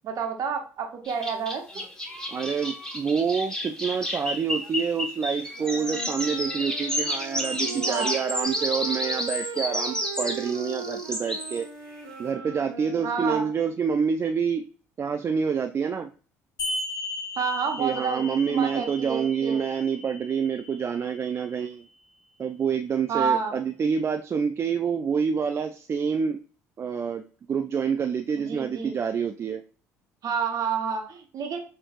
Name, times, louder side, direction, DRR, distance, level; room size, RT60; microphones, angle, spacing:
voice 1, 0.0-1.8 7.6-8.2 13.0-13.5 17.3-19.6 23.1-23.5 28.4-28.9 30.2-31.6, right 6 dB, 50° right, 3 dB, 1.1 m, -29 dB
sound 1, 1.1-11.6, equal, 10° left, 1.3 m, -31 dB
voice 2, 2.3-11.7 12.2-14.7 15.0-16.1 17.8-21.9 22.4-26.4 26.8-27.2 27.5-29.6, right 6 dB, 35° right, 6 dB, 0.4 m, -27 dB
Wind instrument woodwind instrument, 5.5-13.8, right 5 dB, 70° right, 1.3 m, -39 dB
sound 2, 16.6-21.6, left 2 dB, 55° left, 1.8 m, -36 dB
5.8 x 3.1 x 2.4 m, 0.38 s
hypercardioid pair, 60°, 8 cm